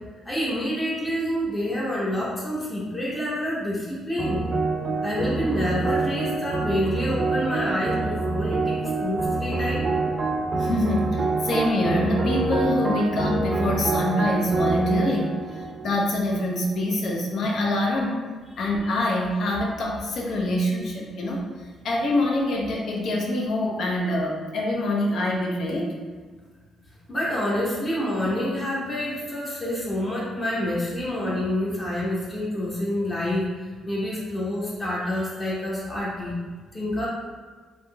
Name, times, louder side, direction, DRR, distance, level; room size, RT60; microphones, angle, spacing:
voice 1, 0.3-4.4 5.0-9.9 27.1-33.5 33.9-36.4 36.7-37.1, left 1 dB, 25° left, -6 dB, 0.8 m, -27 dB
sound 1, 4.2-16.7, right 3 dB, 40° right, 0.4 m, -26 dB
voice 2, 10.5-15.4 15.8-18.2 18.6-21.4 21.8-25.9, left 1 dB, 65° left, -1 dB, 0.6 m, -25 dB
3.4 x 2.6 x 2.2 m, 1.5 s
cardioid pair, 90°, 0 cm